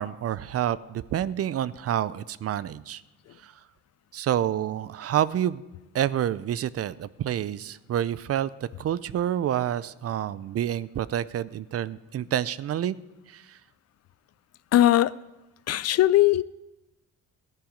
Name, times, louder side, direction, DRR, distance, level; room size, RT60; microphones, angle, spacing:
voice 1, 0.0-3.0 3.4-3.5 4.1-5.6 5.9-13.0 13.3-13.6, right 11 dB, 50° right, 18 dB, 0.5 m, -28 dB
voice 2, 14.7-15.1 15.7-16.4, left 14 dB, 55° left, 19 dB, 0.4 m, -19 dB
14.5 x 10.5 x 5.1 m, 0.99 s
cardioid pair, 90°, 30 cm